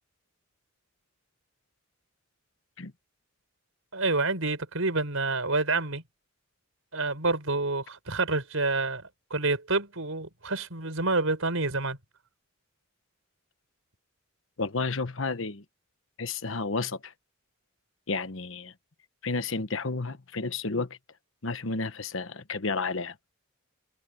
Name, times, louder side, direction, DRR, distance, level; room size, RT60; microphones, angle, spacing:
voice 1, 3.9-6.0 6.9-9.0 9.3-12.0, right 3 dB, 80° right, 5.1 m, -28 dB
voice 2, 14.6-15.6 16.2-17.1 18.1-18.7 19.2-21.0 21.4-23.2, left 3 dB, 65° left, 1.2 m, -31 dB
head